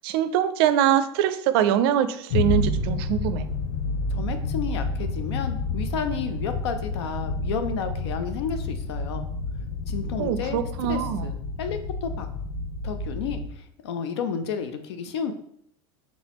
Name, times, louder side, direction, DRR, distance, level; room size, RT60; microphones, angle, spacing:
voice 1, 0.0-3.4 10.2-11.3, right 10 dB, 65° right, 12 dB, 0.4 m, -23 dB
sound 1, 2.3-13.5, left 3 dB, 55° left, 0.9 m, -29 dB
voice 2, 4.1-9.2 9.9-10.6 10.9-12.3 12.8-15.3, left 6 dB, 80° left, 8 dB, 0.6 m, -31 dB
4.1 x 3.5 x 2.9 m, 0.69 s
hypercardioid pair, 105°, 14 cm